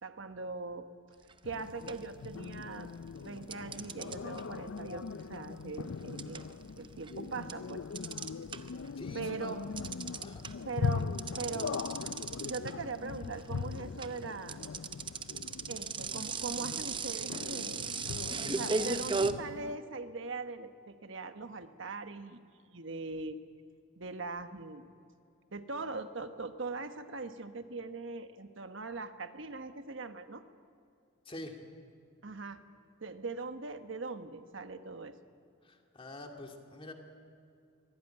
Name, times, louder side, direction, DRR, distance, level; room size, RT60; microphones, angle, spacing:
voice 1, 0.0-0.9 1.4-2.9 3.2-6.4 6.8-7.8 9.1-9.6 10.7-11.1 11.4-11.7 12.4-14.6 15.7-18.0 18.5-22.4 22.7-23.4 24.0-24.9 25.5-30.4 32.2-32.6 33.0-35.1, right 3 dB, 65° right, 9 dB, 1.2 m, -41 dB
sound 1, 1.3-1.5 1.9-2.8 3.5-8.9 9.2-19.3, right 4 dB, 25° right, 0.7 m, -37 dB
sound 2, 1.4-19.8, left 5 dB, 75° left, 0.5 m, -40 dB
voice 2, 9.0-9.7 10.2-10.5 31.2-31.6 35.6-36.9, left 1 dB, 25° left, 3 dB, 2.3 m, -46 dB
24.0 x 17.0 x 9.0 m, 2.5 s
head